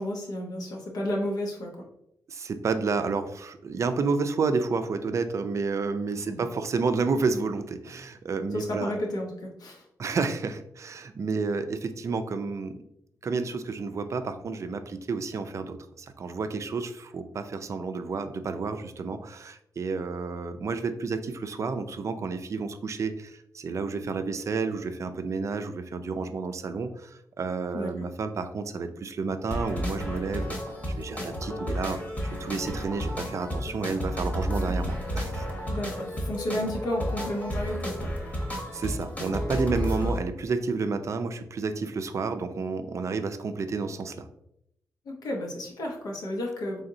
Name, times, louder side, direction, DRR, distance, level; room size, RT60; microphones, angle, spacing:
voice 1, 0.0-1.9 6.3-6.5 8.5-9.9 27.7-28.1 35.7-38.1 45.0-46.8, left 1 dB, 85° left, -1 dB, 0.9 m, -32 dB
voice 2, 2.3-8.9 10.0-12.8 13.2-30.6 31.0-32.1 32.4-35.5 38.7-44.3, right 4 dB, 55° right, 8 dB, 0.4 m, -30 dB
sound 1, 29.5-40.2, equal, 25° left, 1.0 m, -32 dB
3.8 x 3.4 x 2.6 m, 0.78 s
cardioid pair, 80°, 6 cm